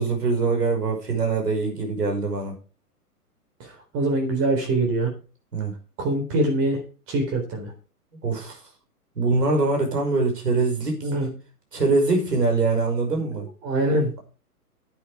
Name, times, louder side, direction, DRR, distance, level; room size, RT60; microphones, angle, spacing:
voice 1, 0.0-2.6 5.5-5.7 8.2-8.6 9.2-11.0 11.7-13.5, right 3 dB, 75° right, 2 dB, 5.7 m, -23 dB
voice 2, 3.6-5.1 6.0-6.8 7.1-7.7 11.0-11.3 13.3-14.1, right 1 dB, 30° right, 3 dB, 3.9 m, -24 dB
10.5 x 9.6 x 5.0 m, 0.35 s
figure-of-eight pair, 120°, 47 cm